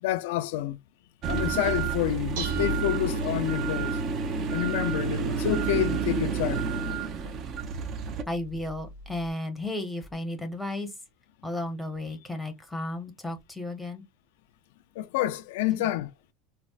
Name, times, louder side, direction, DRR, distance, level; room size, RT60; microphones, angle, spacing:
voice 1, 0.0-0.8 1.3-4.0 4.5-6.7 15.0-16.1, left 13 dB, 80° left, 0.3 m, -28 dB
sound 1, 1.2-8.2, right 5 dB, 40° right, 0.5 m, -29 dB
Dishes pots and pans, 1.9-9.3, right 2 dB, 85° right, 1.0 m, -43 dB
voice 2, 8.3-10.9 11.4-14.0 15.7-15.9, left 1 dB, ahead, 0.7 m, -34 dB
4.1 x 2.0 x 2.3 m
supercardioid pair, 150°, 0 cm